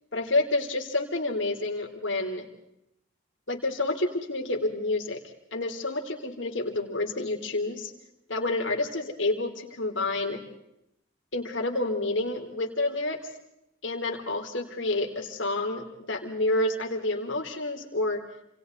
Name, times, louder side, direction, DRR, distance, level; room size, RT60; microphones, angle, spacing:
voice 1, 0.1-2.5 3.5-5.2 5.5-7.9 8.3-10.4 11.3-13.2 13.8-18.2, left 2 dB, 65° left, 2 dB, 3.8 m, -29 dB
29.0 x 28.0 x 4.1 m, 0.80 s
head